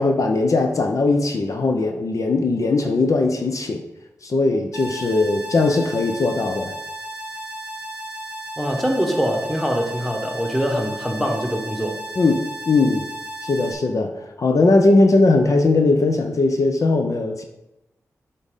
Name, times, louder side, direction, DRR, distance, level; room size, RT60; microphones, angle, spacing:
voice 1, 0.0-3.8 4.2-6.7 12.2-13.0 13.4-17.4, left 3 dB, 65° left, 4 dB, 0.8 m, -19 dB
sound 1, 4.7-13.7, right 1 dB, 15° right, 1.3 m, -34 dB
voice 2, 8.6-12.0, equal, ahead, 3 dB, 1.5 m, -23 dB
8.0 x 3.8 x 5.4 m, 0.91 s
cardioid pair, 50°, 6 cm